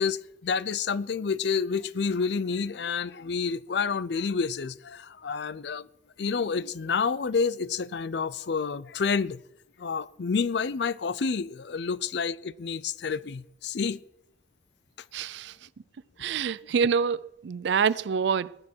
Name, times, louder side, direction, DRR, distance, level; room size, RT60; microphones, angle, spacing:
voice 1, 0.0-5.9 6.2-9.4 9.8-14.0, left 5 dB, 60° left, 0.5 m, -29 dB
voice 2, 15.1-15.6 16.2-18.6, right 6 dB, 65° right, 0.4 m, -26 dB
20.0 x 9.8 x 4.5 m
head